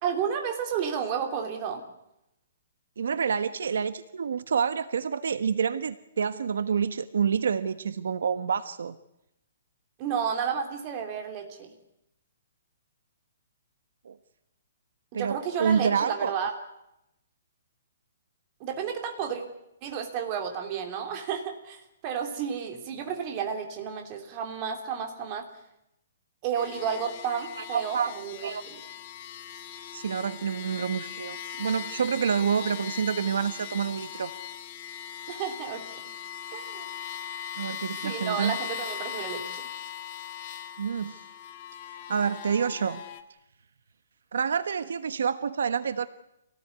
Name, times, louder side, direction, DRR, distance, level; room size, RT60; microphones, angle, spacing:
voice 1, 0.0-1.8 10.0-11.7 15.1-16.5 18.6-19.4 19.8-25.4 26.4-28.8 35.3-36.0 36.5-36.9 38.0-39.6, right 7 dB, 20° right, 4 dB, 3.1 m, -32 dB
voice 2, 3.0-8.9 14.0-14.2 15.1-16.3 27.7-28.1 28.4-28.6 29.9-34.3 37.6-38.6 40.8-41.2 41.9-43.0 44.3-46.1, right 6 dB, 75° right, 12 dB, 1.2 m, -28 dB
sound 1, 26.6-43.2, left 9 dB, 25° left, 1.5 m, -39 dB
27.0 x 18.5 x 9.6 m, 0.85 s
hypercardioid pair, 180°, 0 cm